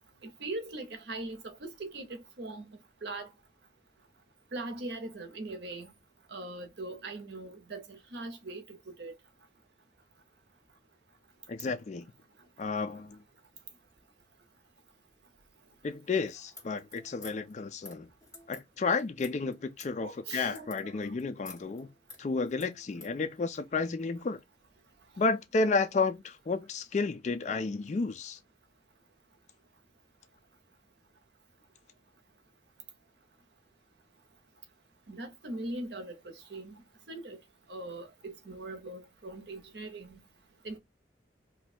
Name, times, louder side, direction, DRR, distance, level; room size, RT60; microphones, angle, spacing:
voice 1, 0.2-3.3 4.5-5.9 6.3-9.1 20.0-20.9 35.1-36.8 37.1-37.4 37.7-40.2 40.6-40.8, right 2 dB, 70° right, 0.8 m, -41 dB
voice 2, 11.5-12.1 12.6-13.2 15.8-18.1 18.5-21.9 22.2-24.4 25.2-28.4, left 4 dB, 40° left, 0.3 m, -31 dB
sound 1, 16.4-23.2, left 3 dB, 20° left, 1.5 m, -52 dB
2.7 x 2.2 x 4.1 m
head